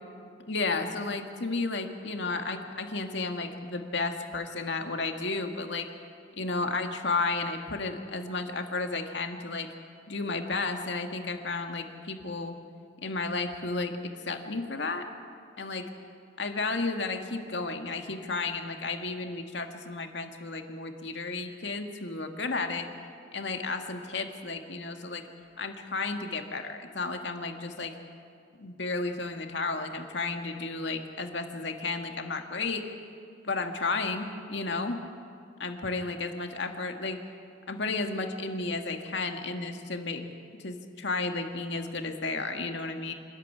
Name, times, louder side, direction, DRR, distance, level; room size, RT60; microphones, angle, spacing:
voice 1, 0.5-5.9 6.4-9.7 10.1-12.5 13.0-13.9 14.3-15.0 15.6-15.9 16.4-22.9 23.3-25.2 25.6-27.9 28.6-32.9 33.4-35.0 35.6-37.2 37.7-40.2 40.6-43.1, left 3 dB, 70° left, 4 dB, 2.0 m, -32 dB
26.5 x 14.0 x 9.6 m, 2.3 s
head